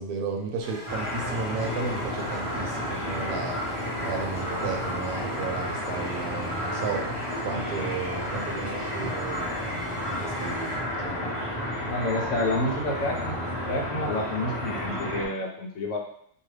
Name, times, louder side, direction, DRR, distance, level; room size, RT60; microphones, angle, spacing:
voice 1, 0.0-3.8 4.0-7.1 7.4-9.5 10.1-11.4, right 4 dB, 80° right, 2 dB, 1.1 m, -34 dB
sound 1, 0.6-10.8, right 1 dB, 50° right, 1.1 m, -41 dB
sound 2, 0.9-15.3, equal, 30° left, 0.7 m, -31 dB
voice 2, 11.9-13.3 13.7-16.0, left 2 dB, 70° left, 1 dB, 0.8 m, -29 dB
2.6 x 2.3 x 3.2 m, 0.66 s
omnidirectional pair, 1.6 m